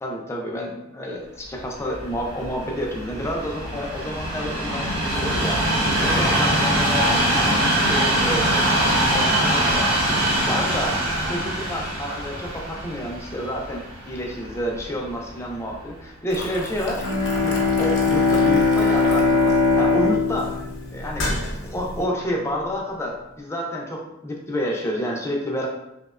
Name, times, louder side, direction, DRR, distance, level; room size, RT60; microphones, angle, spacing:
voice 1, 0.0-5.6 5.9-10.9 11.3-17.0 17.4-20.5 20.9-25.7, equal, 15° left, -1 dB, 0.3 m, -29 dB
Train, 1.8-15.0 15.7-15.8, right 1 dB, 85° right, 0.9 m, -23 dB
Boiling, 16.3-22.1, left 1 dB, 60° left, 0.6 m, -33 dB
Bowed string instrument, 16.9-21.7, left 4 dB, 60° right, 0.4 m, -21 dB
2.8 x 2.1 x 2.3 m, 0.89 s
head